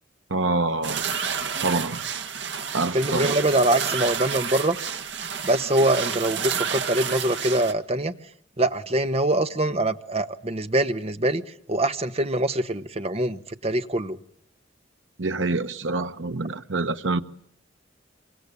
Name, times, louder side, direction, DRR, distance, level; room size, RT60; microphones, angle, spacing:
voice 1, 0.3-1.1 1.6-2.0 2.7-3.4 15.2-17.2, right 3 dB, 85° right, 1.2 m, -26 dB
sound 1, 0.8-7.7, right 7 dB, 65° right, 1.4 m, -30 dB
voice 2, 2.9-4.8 5.4-8.1 8.6-11.4 11.7-14.2, right 1 dB, 30° right, 1.2 m, -24 dB
27.0 x 24.5 x 8.4 m
head